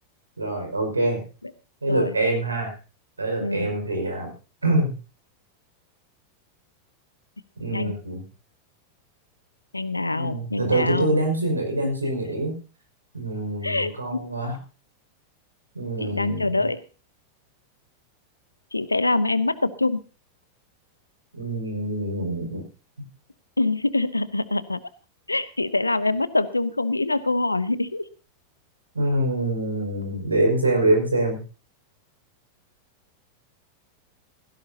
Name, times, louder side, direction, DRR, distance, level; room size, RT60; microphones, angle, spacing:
voice 1, 0.4-1.2 1.8-2.7 3.2-4.3 4.6-4.9 7.6-8.2 10.1-12.5 13.1-14.6 15.7-16.6 21.3-22.6 28.9-31.4, right 2 dB, 80° right, 3 dB, 5.2 m, -25 dB
voice 2, 3.4-3.7 7.7-7.9 9.7-11.2 13.6-14.3 16.0-16.8 18.7-20.0 23.6-24.8 25.3-28.0, left 2 dB, 85° left, 16 dB, 0.9 m, -25 dB
17.0 x 16.0 x 2.8 m, 0.35 s
figure-of-eight pair, 90°, 0 cm